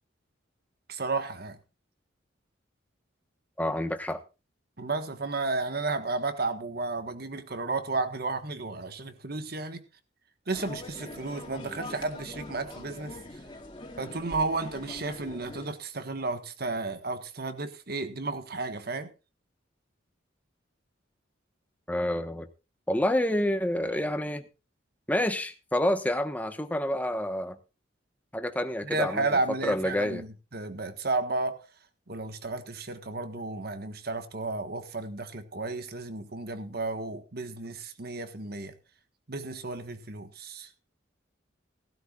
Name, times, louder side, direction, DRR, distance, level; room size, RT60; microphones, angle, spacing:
voice 1, 0.9-1.6 4.8-9.8 10.5-13.1 14.0-19.1 28.8-31.6 32.1-38.7 39.3-40.7, right 3 dB, 55° right, 1.5 m, -33 dB
voice 2, 3.6-4.2 21.9-22.5 22.9-24.4 25.1-27.6 28.3-30.2, left 1 dB, 10° left, 1.2 m, -28 dB
sound 1, 10.5-15.7, left 1 dB, 25° left, 2.2 m, -43 dB
18.5 x 12.5 x 2.4 m
head